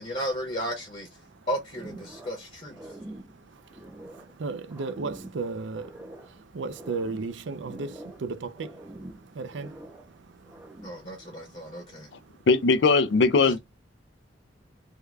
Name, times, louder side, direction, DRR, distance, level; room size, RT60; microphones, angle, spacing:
voice 1, 0.0-1.1 1.5-3.0 10.8-12.1 13.4-13.6, equal, 35° left, 0.9 m, -34 dB
sound 1, 1.7-2.4 2.7-4.4 4.7-6.4 6.7-8.3 8.6-10.1 10.4-11.1, right 1 dB, 10° right, 0.5 m, -45 dB
voice 2, 2.7-12.5, right 4 dB, 75° right, 0.5 m, -37 dB
voice 3, 12.5-13.6, left 4 dB, 65° left, 0.5 m, -20 dB
3.6 x 2.2 x 3.2 m
head